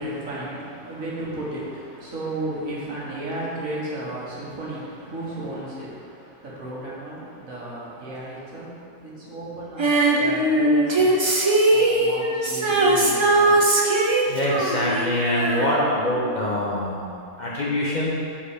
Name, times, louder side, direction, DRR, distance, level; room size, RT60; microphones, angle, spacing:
voice 1, 0.0-11.4 11.7-13.7, right 1 dB, 65° right, -7 dB, 2.0 m, -34 dB
Female singing, 9.8-16.4 16.7-16.8, right 2 dB, 50° right, 0.3 m, -20 dB
voice 2, 14.3-18.2, left 1 dB, 40° left, -6 dB, 0.8 m, -24 dB
7.4 x 4.2 x 5.0 m, 2.5 s
omnidirectional pair, 1.5 m